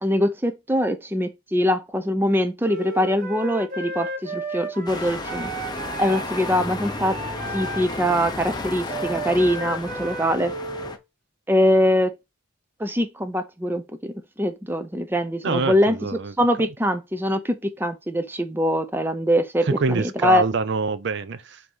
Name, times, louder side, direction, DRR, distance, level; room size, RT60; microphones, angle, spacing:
voice 1, 0.0-5.5 6.0-7.2 7.5-10.5 11.5-12.1 12.8-16.0 16.4-20.4, equal, 10° right, 0.6 m, -23 dB
Wind instrument woodwind instrument, 2.6-11.0, right 2 dB, 40° right, 1.7 m, -34 dB
sound 1, 4.9-11.0, left 2 dB, 20° left, 0.8 m, -33 dB
voice 2, 15.4-16.3 19.6-21.6, right 4 dB, 55° right, 0.5 m, -25 dB
7.9 x 2.9 x 5.4 m
head